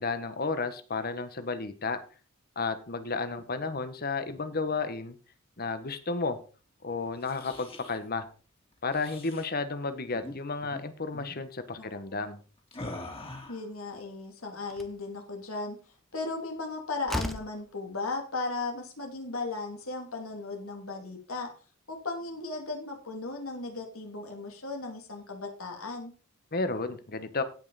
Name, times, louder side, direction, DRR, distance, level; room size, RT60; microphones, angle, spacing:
voice 1, 0.0-2.0 2.6-5.2 5.6-6.4 6.8-8.3 8.8-12.4 26.5-27.4, left 4 dB, 45° left, 10 dB, 1.2 m, -32 dB
sound 1, 7.1-8.0 8.9-9.5 10.1-10.4 10.6-10.8 11.1-11.4 12.7-13.7, left 2 dB, 25° left, 2.6 m, -43 dB
voice 2, 11.8-12.3 13.5-15.8 16.1-21.5 21.9-26.1, left 3 dB, 85° left, 3 dB, 2.9 m, -36 dB
Slam, 14.0-14.1 14.7-15.0 16.6-16.7 17.1-17.6, equal, ahead, 0.9 m, -35 dB
16.5 x 5.6 x 4.1 m, 0.37 s
head